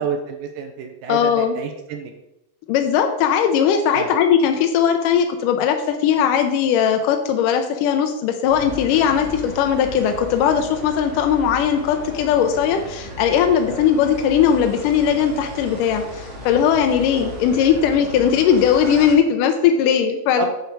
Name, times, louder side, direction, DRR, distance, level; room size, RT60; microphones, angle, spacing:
voice 1, 0.0-2.1 3.9-4.1 13.7-13.9 20.4-20.5, right 6 dB, 80° right, 5 dB, 2.5 m, -29 dB
voice 2, 1.1-1.6 2.7-20.5, left 8 dB, 75° left, 5 dB, 2.0 m, -19 dB
sound 1, 8.5-19.1, left 1 dB, 55° right, 2.6 m, -35 dB
6.9 x 6.9 x 4.6 m, 0.87 s
omnidirectional pair, 4.3 m